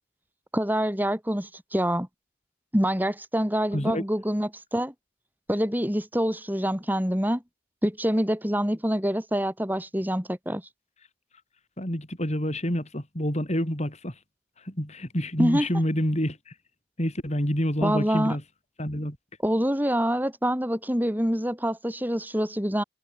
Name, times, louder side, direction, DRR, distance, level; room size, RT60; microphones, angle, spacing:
voice 1, 0.5-2.1 2.7-4.9 5.5-7.4 7.8-10.6 15.4-15.7 17.8-18.4 19.4-22.8, equal, 10° right, 4.8 m, -26 dB
voice 2, 3.7-4.0 11.8-14.2 14.6-16.5 17.0-18.4 18.8-19.2, equal, 35° left, 5.8 m, -28 dB
head